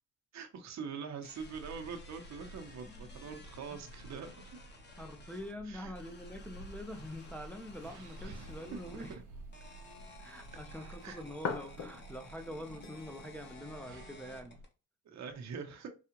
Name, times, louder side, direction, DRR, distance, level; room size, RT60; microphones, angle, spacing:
voice 1, 0.3-4.3 5.6-5.9 8.3-9.2 11.0-11.2 15.0-15.9, right 6 dB, 65° right, 1.0 m, -44 dB
sound 1, 1.2-5.5 5.9-9.2 9.5-14.7, left 3 dB, 35° left, 1.2 m, -56 dB
sound 2, 1.4-14.6, right 2 dB, 90° right, 0.8 m, -52 dB
voice 2, 5.0-9.2 10.2-14.6, left 1 dB, 5° left, 0.6 m, -45 dB
sound 3, 5.7-13.5, left 5 dB, 65° left, 0.9 m, -47 dB
4.8 x 2.4 x 2.9 m
cardioid pair, 90°, 30 cm